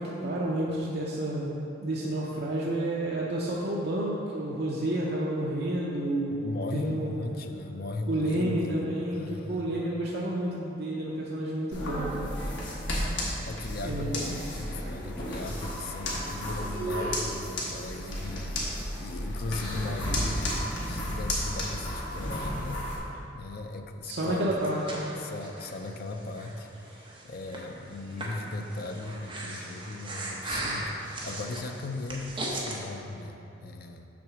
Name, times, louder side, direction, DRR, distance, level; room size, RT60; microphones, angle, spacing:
voice 1, 0.0-7.1 8.1-12.3 13.8-14.3 24.0-25.1, right 1 dB, 60° right, -4 dB, 0.6 m, -30 dB
voice 2, 6.3-8.9 9.1-9.7 13.4-18.6 19.0-20.6 20.8-22.8 23.3-24.5 25.2-34.1, left 2 dB, 55° left, 5 dB, 0.5 m, -37 dB
sound 1, 11.7-23.0, equal, 75° left, 1.3 m, -33 dB
Breathing, 24.3-32.8, right 1 dB, 25° right, 0.8 m, -38 dB
6.0 x 3.7 x 6.1 m, 2.9 s
head